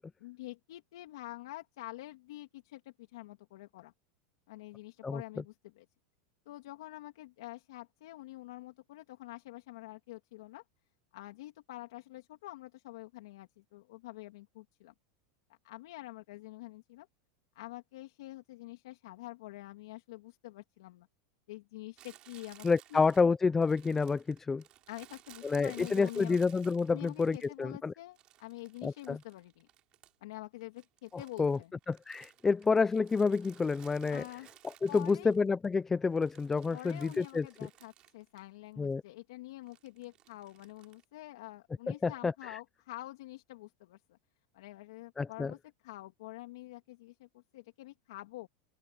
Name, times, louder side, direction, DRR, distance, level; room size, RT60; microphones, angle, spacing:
voice 1, 0.2-3.9 4.5-5.8 6.5-10.6 11.1-14.9 15.6-17.1 17.5-21.1 21.5-23.0 24.9-26.4 26.9-29.7 30.2-31.7 34.1-34.5 34.9-35.4 36.7-44.2 44.5-48.5, left 17 dB, 80° left, 2.4 m, -47 dB
Crumpling crinkling, 22.0-27.7 28.2-30.3 30.6-35.7 36.0-38.5 38.7-38.8 39.7-41.0, right 14 dB, 40° right, 5.0 m, -59 dB
voice 2, 22.6-24.6 25.4-27.9 28.8-29.2 31.1-31.6 31.9-34.2 34.8-37.5 38.8-39.0 41.9-42.6 45.2-45.5, left 4 dB, 15° left, 0.5 m, -29 dB
open air
supercardioid pair, 135°, 2 cm